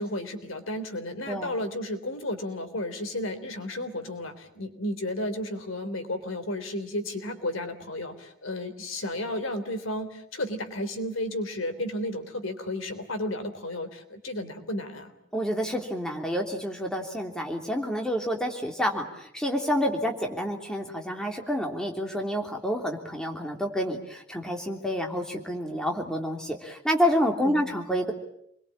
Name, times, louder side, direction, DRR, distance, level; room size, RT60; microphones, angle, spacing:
voice 1, 0.0-15.1 27.4-27.8, left 1 dB, 85° left, 9 dB, 3.5 m, -33 dB
voice 2, 15.3-28.1, equal, 5° left, 2 dB, 3.2 m, -28 dB
28.0 x 22.0 x 8.7 m, 0.75 s
head